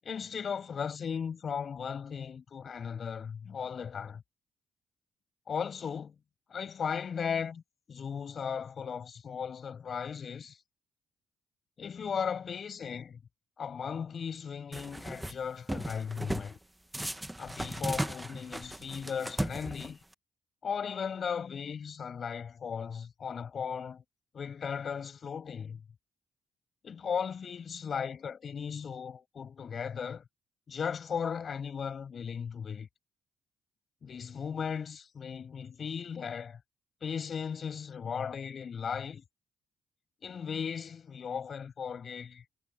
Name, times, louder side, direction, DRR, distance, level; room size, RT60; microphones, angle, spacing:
voice 1, 0.0-4.2 5.5-6.1 6.5-7.6 7.9-10.6 11.8-13.2 13.6-16.6 17.4-20.0 20.6-24.0 24.3-25.8 26.8-30.2 30.7-32.9 34.0-36.6 37.0-39.2 40.2-42.4, left 7 dB, 50° left, 7.8 m, -36 dB
sound 1, 14.7-15.3 15.7-16.5 16.9-20.1, right 1 dB, 10° right, 1.3 m, -36 dB
supercardioid pair, 70°, 0 cm